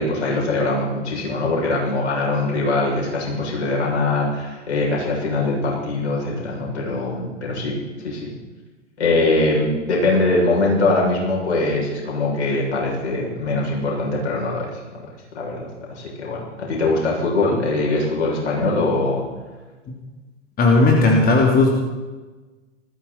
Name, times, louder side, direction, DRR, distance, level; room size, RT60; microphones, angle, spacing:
voice 1, 0.0-7.8 8.0-8.3 9.0-14.7 15.4-19.2, left 2 dB, 70° left, -3 dB, 7.2 m, -22 dB
voice 2, 20.6-21.7, left 3 dB, 25° left, -1 dB, 3.1 m, -15 dB
20.0 x 15.0 x 4.4 m, 1.2 s
figure-of-eight pair, 90°, 36 cm